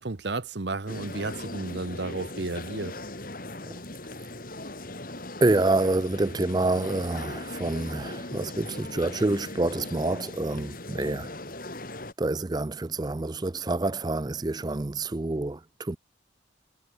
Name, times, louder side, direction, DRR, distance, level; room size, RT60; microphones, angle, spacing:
voice 1, 0.0-3.0, right 3 dB, 60° right, 1.0 m, -33 dB
sound 1, 0.9-12.1, left 2 dB, 45° left, 3.6 m, -39 dB
voice 2, 5.4-11.3 12.2-16.0, right 2 dB, 20° right, 0.4 m, -27 dB
head